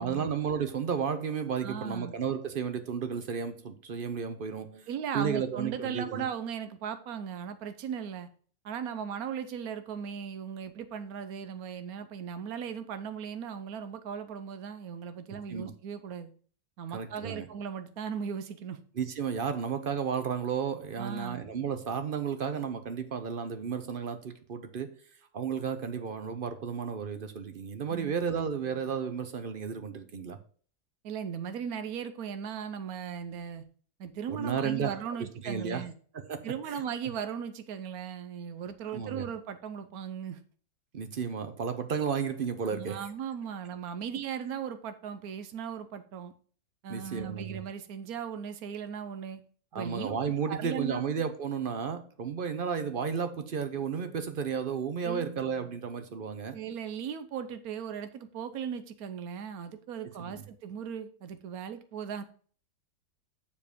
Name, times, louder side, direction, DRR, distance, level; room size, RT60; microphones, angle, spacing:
voice 1, 0.0-4.9 5.1-6.3 15.5-15.7 16.9-17.5 19.0-24.9 25.3-30.4 34.3-35.0 35.4-35.8 36.1-36.8 38.9-39.3 40.9-43.0 46.9-47.6 49.7-56.6 60.2-60.4, right 6 dB, 50° right, 0.7 m, -33 dB
voice 2, 1.6-2.1 4.9-8.3 8.6-16.3 16.8-18.8 21.0-21.4 27.9-28.1 31.0-33.6 34.0-35.9 36.4-40.4 42.6-46.3 46.8-49.4 49.7-50.2 50.5-51.0 55.0-55.3 56.5-62.2, right 7 dB, 70° right, 1.2 m, -37 dB
7.1 x 4.8 x 5.1 m
omnidirectional pair, 1.7 m